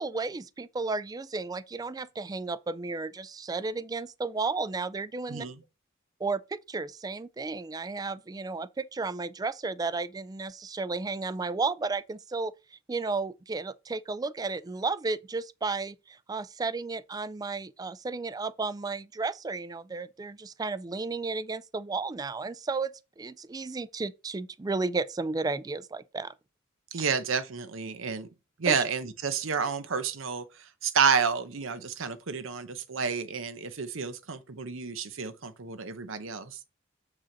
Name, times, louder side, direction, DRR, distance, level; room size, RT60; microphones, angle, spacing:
voice 1, 0.0-5.5 6.2-26.3 28.7-28.8, right 3 dB, 20° right, 0.3 m, -33 dB
voice 2, 26.9-28.3 28.6-30.4 30.8-36.6, right 6 dB, 80° right, 0.9 m, -30 dB
7.4 x 4.8 x 4.0 m
head